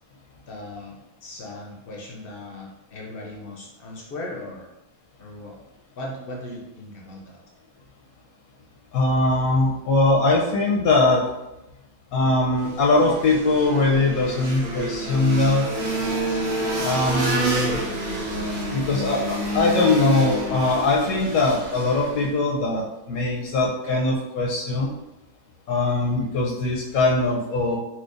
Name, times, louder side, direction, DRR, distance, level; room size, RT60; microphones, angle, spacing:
voice 1, 0.5-0.9 1.2-4.7 5.2-5.6 6.0-7.4, left 1 dB, 65° left, -1 dB, 0.5 m, -37 dB
voice 2, 8.9-11.2 12.1-15.7 16.8-17.8 18.7-24.9 25.7-27.8, left 2 dB, 85° left, -3 dB, 1.0 m, -21 dB
sound 1, 12.6-22.4, right 1 dB, 75° right, 1.2 m, -28 dB
4.4 x 2.2 x 2.4 m, 0.95 s
omnidirectional pair, 1.5 m